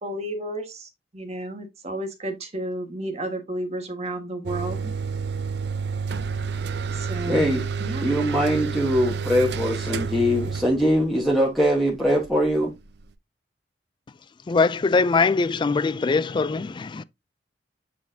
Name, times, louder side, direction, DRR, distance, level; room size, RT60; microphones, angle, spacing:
voice 1, 0.0-4.9 6.9-7.5 7.8-8.1, right 1 dB, 40° right, 1.6 m, -32 dB
sound 1, 4.4-13.1, right 5 dB, 70° right, 0.6 m, -30 dB
voice 2, 7.3-7.7 8.0-12.7, equal, ahead, 1.3 m, -22 dB
voice 3, 14.5-17.0, left 4 dB, 25° left, 0.3 m, -22 dB
8.3 x 4.3 x 2.7 m
head